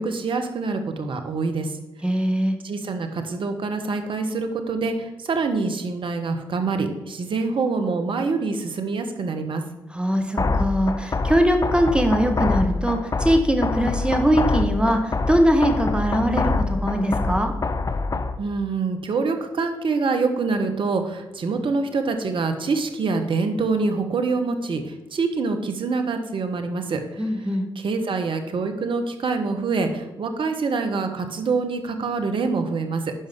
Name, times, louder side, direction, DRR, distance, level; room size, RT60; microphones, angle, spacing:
voice 1, 0.0-1.8 2.6-9.6 18.4-27.5 27.7-33.1, right 4 dB, 55° right, 6 dB, 1.1 m, -25 dB
voice 2, 2.0-2.6 9.9-17.5 27.2-27.7, equal, 10° right, 4 dB, 1.3 m, -21 dB
sound 1, 10.4-18.4, left 3 dB, 35° left, 0.7 m, -25 dB
11.0 x 5.2 x 3.6 m, 1.0 s
hypercardioid pair, 40°, 10 cm